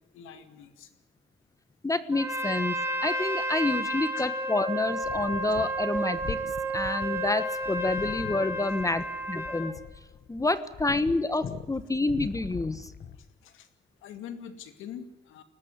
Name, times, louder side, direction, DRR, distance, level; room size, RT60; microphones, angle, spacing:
voice 1, 0.1-0.9 4.1-4.3 13.4-13.7 14.0-15.4, left 8 dB, 90° left, 8 dB, 2.5 m, -44 dB
voice 2, 1.8-6.4 6.7-9.8 10.3-12.9, left 2 dB, 15° left, 13 dB, 1.3 m, -28 dB
Trumpet, 2.1-9.8, right 1 dB, 10° right, 4.1 m, -31 dB
sound 1, 5.0-13.3, left 7 dB, 50° left, 1.8 m, -42 dB
21.5 x 18.5 x 9.7 m, 1.2 s
cardioid pair, 90°, 20 cm